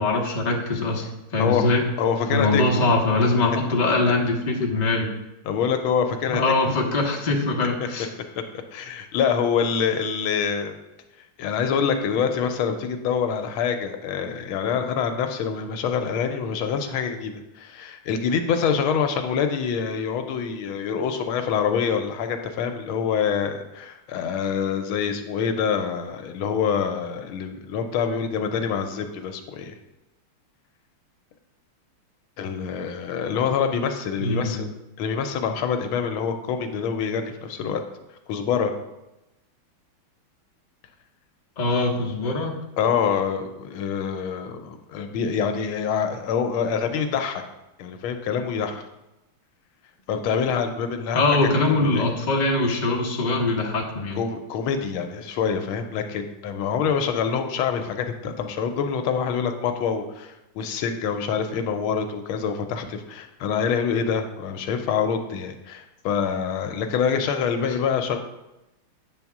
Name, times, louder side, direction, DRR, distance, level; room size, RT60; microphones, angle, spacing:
voice 1, 0.0-1.9 2.3-5.1 6.3-8.1 34.2-34.7 41.6-42.5 51.1-54.2, left 2 dB, 35° left, 0 dB, 0.6 m, -22 dB
voice 2, 1.4-1.7 2.0-2.8 3.3-3.4 5.4-6.4 8.7-10.7 11.4-29.8 32.4-34.7 35.0-37.8 38.3-38.7 42.8-47.4 47.8-48.8 50.1-51.2 51.7-52.0 54.2-68.2, left 6 dB, 80° left, 6 dB, 1.5 m, -26 dB
8.8 x 3.5 x 5.9 m, 0.95 s
omnidirectional pair, 2.3 m